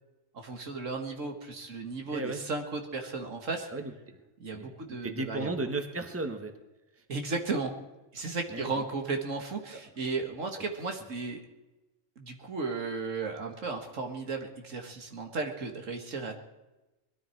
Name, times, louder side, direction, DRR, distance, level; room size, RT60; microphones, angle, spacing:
voice 1, 0.3-3.7 4.4-5.5 7.1-7.7 8.1-11.4 12.2-16.3, right 4 dB, 85° right, 4 dB, 2.1 m, -35 dB
voice 2, 2.0-2.4 3.7-4.2 4.5-4.7 5.0-6.5 7.0-7.1 8.5-8.8 9.7-9.8 10.6-10.7, right 2 dB, 10° right, 6 dB, 1.2 m, -35 dB
20.5 x 13.0 x 4.6 m, 1.0 s
omnidirectional pair, 1.3 m